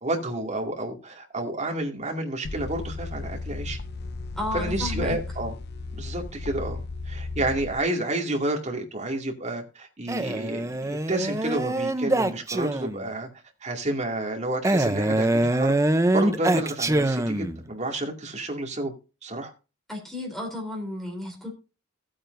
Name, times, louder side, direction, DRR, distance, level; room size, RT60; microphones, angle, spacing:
voice 1, 0.0-3.8 4.5-5.6 5.9-13.3 13.6-15.7 16.1-18.9 19.2-19.5, right 1 dB, 35° right, 1 dB, 2.4 m, -30 dB
sound 1, 2.4-7.8, left 3 dB, 55° left, 0.6 m, -34 dB
voice 2, 4.4-5.2 19.9-21.5, left 1 dB, ahead, 1 dB, 3.6 m, -33 dB
Male speech man speaking, 10.1-13.1 14.6-17.6, right 1 dB, 15° right, 0.7 m, -24 dB
15.5 x 8.8 x 2.6 m, 0.31 s
head